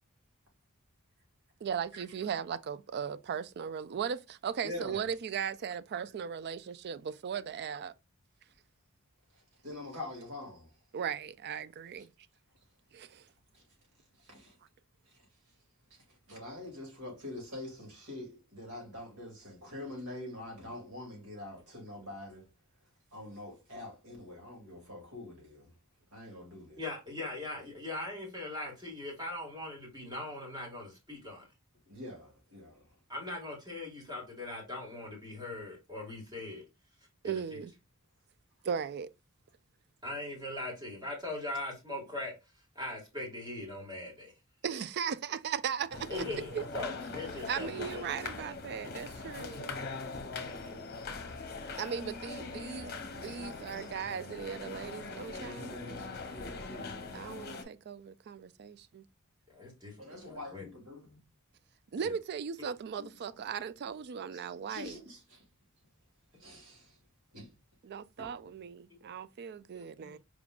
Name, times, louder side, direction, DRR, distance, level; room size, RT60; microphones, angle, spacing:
voice 1, 1.6-7.9 10.9-12.1 12.9-13.2 37.2-37.7 38.6-39.1 44.6-46.3 46.5-46.6 47.5-49.7 51.8-56.2 57.1-59.0 61.9-65.0 67.8-70.2, right 7 dB, 50° right, 0.3 m, -37 dB
voice 2, 4.6-5.0 9.3-10.7 11.9-12.0 13.5-13.6 14.2-14.6 15.1-15.2 16.3-22.5 23.1-25.7 26.1-26.8 31.9-32.9 53.8-53.9 60.0-61.2 63.0-63.1 64.3-65.4 66.4-67.0 67.3-67.5 68.2-68.4, left 1 dB, 75° right, 2.4 m, -45 dB
voice 3, 26.8-31.5 33.1-36.6 37.2-37.6 40.0-42.3 42.8-44.3 46.1-48.1 59.5-60.7 62.0-62.1 69.7-70.2, left 2 dB, 20° right, 2.0 m, -40 dB
sound 1, 45.9-57.6, left 3 dB, 45° left, 0.9 m, -42 dB
4.9 x 3.6 x 2.4 m
head